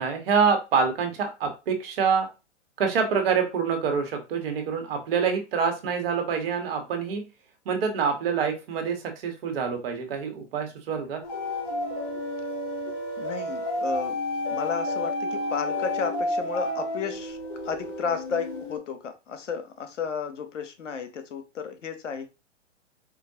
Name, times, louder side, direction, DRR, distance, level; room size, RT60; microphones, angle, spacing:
voice 1, 0.0-2.3 2.8-7.2 7.6-11.2, right 6 dB, 55° right, 1.2 m, -26 dB
sound 1, 11.2-18.8, left 1 dB, 45° left, 1.2 m, -31 dB
voice 2, 13.2-14.2 14.5-17.4 17.7-22.3, left 6 dB, 80° left, 0.8 m, -33 dB
4.6 x 2.5 x 2.7 m
hypercardioid pair, 120°, 36 cm